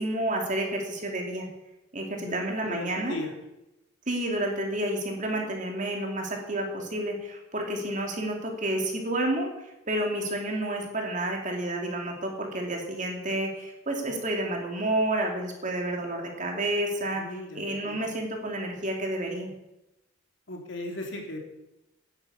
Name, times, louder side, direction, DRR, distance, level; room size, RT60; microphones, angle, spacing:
voice 1, 0.0-1.5 1.9-3.2 4.1-17.2 17.5-19.5, right 1 dB, 40° right, 1 dB, 2.9 m, -30 dB
voice 2, 2.2-3.3 17.1-18.0 20.5-21.4, left 1 dB, 65° left, 2 dB, 3.0 m, -37 dB
10.5 x 9.6 x 8.6 m, 0.93 s
head